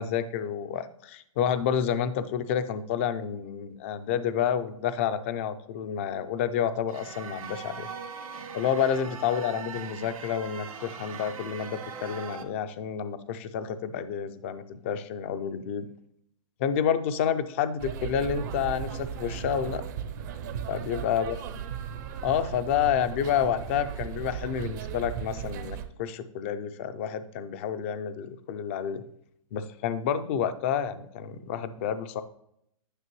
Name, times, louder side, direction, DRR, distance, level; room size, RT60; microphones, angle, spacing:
voice 1, 0.0-7.9 8.5-15.9 16.6-19.8 20.7-21.4 22.2-29.0 29.5-32.2, left 8 dB, 20° left, 12 dB, 0.3 m, -29 dB
sound 1, 6.9-12.4, right 6 dB, 85° right, 1.7 m, -41 dB
sound 2, 17.8-25.9, right 8 dB, 30° right, 0.5 m, -36 dB
9.7 x 5.9 x 3.0 m, 0.74 s
hypercardioid pair, 165°, 18 cm